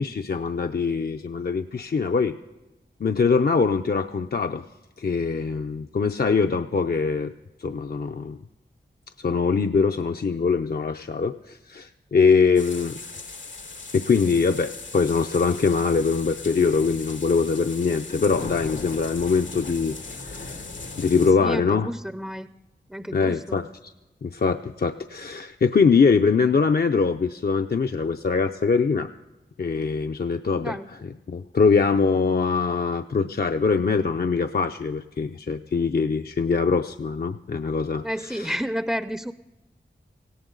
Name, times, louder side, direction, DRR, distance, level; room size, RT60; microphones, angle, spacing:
voice 1, 0.0-2.4 3.0-4.6 5.0-7.3 7.6-8.4 9.2-13.0 13.9-20.6 21.0-21.9 23.1-23.9 24.2-29.1 29.6-30.8 31.3-38.5, left 5 dB, 55° left, 6 dB, 0.5 m, -23 dB
sound 1, 12.5-21.3, left 3 dB, 90° left, 1.6 m, -38 dB
voice 2, 21.4-22.5 22.9-23.6 30.6-30.9 38.0-39.3, equal, 5° right, 12 dB, 0.5 m, -30 dB
18.0 x 16.5 x 3.9 m, 1.1 s
wide cardioid pair, 55°, 19 cm